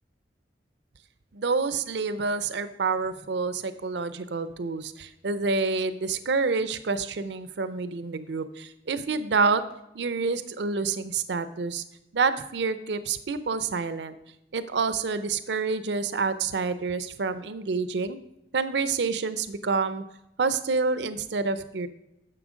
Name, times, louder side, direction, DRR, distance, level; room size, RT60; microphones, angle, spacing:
voice 1, 1.3-9.6 9.9-11.8 12.1-14.2 14.5-18.2 18.5-20.0 20.4-21.9, right 4 dB, 75° right, 13 dB, 0.5 m, -28 dB
9.8 x 6.9 x 5.0 m, 0.86 s
head